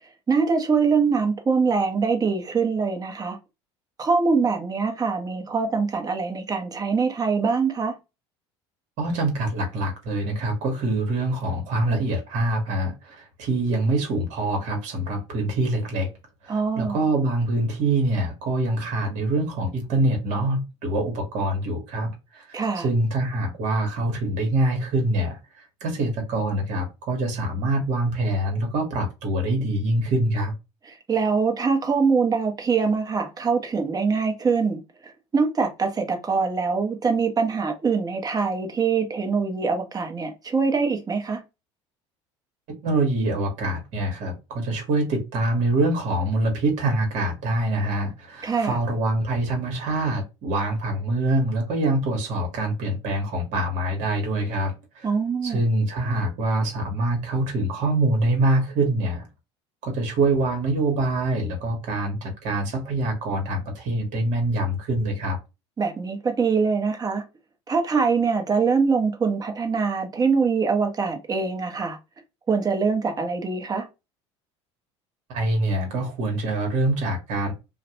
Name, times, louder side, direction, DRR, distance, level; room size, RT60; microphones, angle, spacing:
voice 1, 0.3-3.4 4.0-7.9 16.5-17.0 22.5-22.9 30.9-41.4 48.4-48.8 55.0-55.6 65.8-67.2 67.7-72.0 72.5-73.9, right 5 dB, 25° right, 0.8 m, -23 dB
voice 2, 9.0-16.1 16.4-30.5 42.8-55.1 55.4-59.3 59.8-65.4 75.3-77.5, right 2 dB, 60° right, 1.1 m, -25 dB
2.5 x 2.1 x 2.8 m
hypercardioid pair, 75°, 15 cm